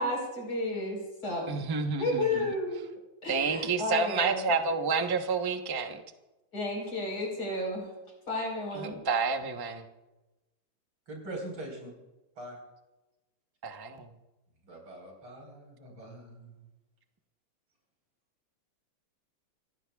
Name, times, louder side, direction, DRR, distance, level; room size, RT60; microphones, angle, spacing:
voice 1, 0.0-1.6 2.0-2.8 3.2-4.5 6.5-7.9 8.3-9.0, left 1 dB, 45° left, -1 dB, 5.1 m, -32 dB
voice 2, 1.5-2.5 3.3-6.0 8.7-9.8 13.6-14.1, right 4 dB, 25° right, 5 dB, 0.5 m, -29 dB
voice 3, 11.1-11.9 12.4-12.6 14.7-16.6, right 1 dB, 75° right, 0 dB, 5.5 m, -42 dB
27.5 x 15.5 x 2.4 m, 1.0 s
omnidirectional pair, 2.3 m